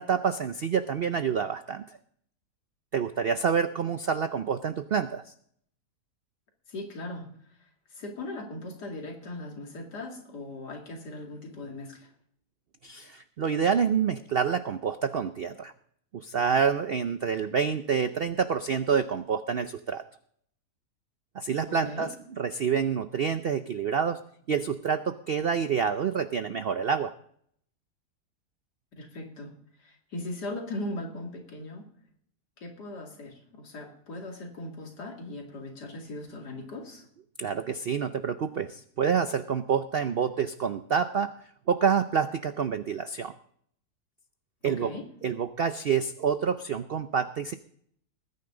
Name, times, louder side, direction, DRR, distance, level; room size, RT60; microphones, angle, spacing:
voice 1, 0.0-2.0 2.9-5.3 12.8-15.7 16.1-20.0 21.3-22.1 22.4-24.2 24.5-27.1 37.4-41.3 41.7-43.3 44.6-44.9 45.2-47.5, right 6 dB, 70° right, 10 dB, 0.5 m, -27 dB
voice 2, 6.7-7.3 7.6-12.1 21.7-22.1 29.0-29.5 29.8-31.9 32.6-37.1 44.6-45.1, left 2 dB, 80° left, 2 dB, 3.0 m, -39 dB
20.0 x 9.6 x 3.8 m, 0.65 s
omnidirectional pair, 1.7 m